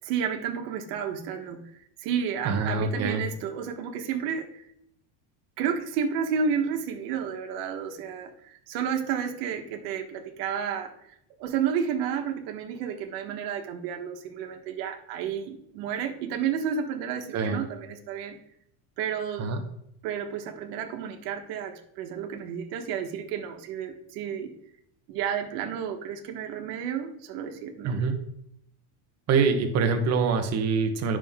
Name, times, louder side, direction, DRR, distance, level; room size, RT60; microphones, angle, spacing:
voice 1, 0.0-1.7 2.0-4.6 5.6-18.4 19.0-19.5 20.0-24.5 25.1-27.9, right 7 dB, 70° right, 4 dB, 1.5 m, -31 dB
voice 2, 2.4-3.2 17.3-17.7 19.4-19.6 27.8-28.2 29.3-31.2, right 5 dB, 30° right, 6 dB, 1.0 m, -25 dB
11.0 x 6.1 x 3.6 m, 0.75 s
cardioid pair, 175°, 48 cm